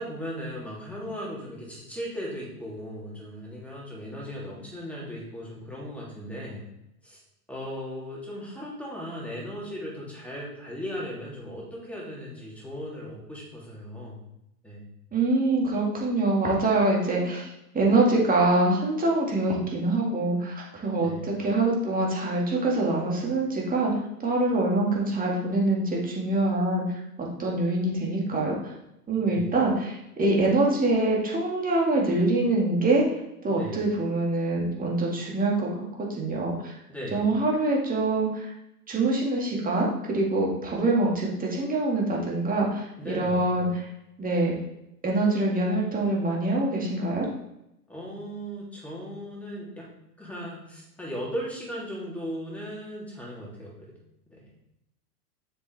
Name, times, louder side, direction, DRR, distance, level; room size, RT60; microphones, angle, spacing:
voice 1, 0.0-6.6 7.0-7.2 7.5-14.2 14.6-14.8 21.0-21.3 29.2-29.5 33.5-33.9 36.9-37.3 43.0-43.5 47.9-49.9 50.2-53.9 54.3-54.5, equal, 5° left, -5 dB, 3.2 m, -37 dB
voice 2, 15.1-23.9 24.2-26.8 27.2-28.7 29.1-33.0 33.4-36.7 37.1-38.5 38.9-43.9 44.2-44.5 45.0-47.3, right 2 dB, 15° right, -3 dB, 2.3 m, -25 dB
7.0 x 6.8 x 3.6 m, 0.84 s
hypercardioid pair, 100°, 47 cm